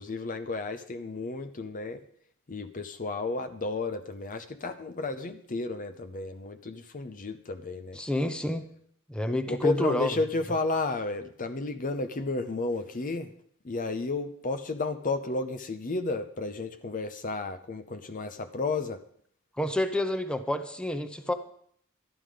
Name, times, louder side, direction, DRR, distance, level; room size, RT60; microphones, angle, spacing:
voice 1, 0.0-2.0 2.5-8.0 9.5-13.3 13.6-19.0, left 3 dB, 40° left, 9 dB, 0.7 m, -32 dB
voice 2, 7.9-8.7 9.1-10.1 19.6-21.3, left 1 dB, 5° left, 7 dB, 0.8 m, -29 dB
12.5 x 11.0 x 5.1 m, 0.64 s
head